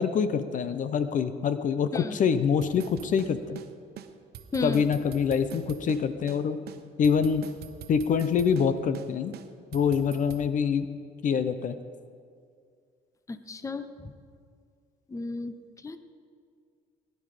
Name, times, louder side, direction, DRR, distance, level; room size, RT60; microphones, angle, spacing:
voice 1, 0.0-3.6 4.6-6.6 7.0-7.5 7.9-9.4 9.7-10.9 11.2-11.8, left 6 dB, 50° left, 11 dB, 0.8 m, -25 dB
sound 1, 2.6-3.7 4.0-4.1 4.3-6.0 6.3-6.4 6.7-8.7 8.9-9.1 9.3-10.4, right 10 dB, 70° right, 1.0 m, -43 dB
voice 2, 4.5-4.9 13.3-14.1 15.1-16.0, left 3 dB, 20° left, 10 dB, 0.8 m, -34 dB
20.5 x 11.0 x 5.0 m, 2.2 s
cardioid pair, 110°, 17 cm